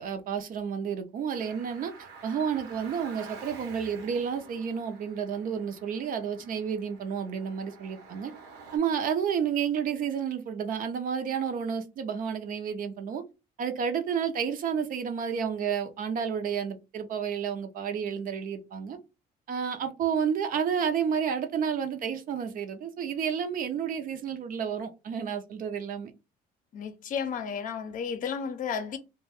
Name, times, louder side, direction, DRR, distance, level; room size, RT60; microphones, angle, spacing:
voice 1, 0.0-1.9 2.2-8.3 8.7-13.2 13.6-19.0 19.5-26.1, right 7 dB, 55° right, 0.6 m, -31 dB
Car, 1.3-8.8, right 5 dB, 85° right, 0.9 m, -49 dB
voice 2, 26.7-29.0, left 6 dB, 50° left, 0.5 m, -33 dB
2.4 x 2.2 x 3.4 m
cardioid pair, 110°, 17 cm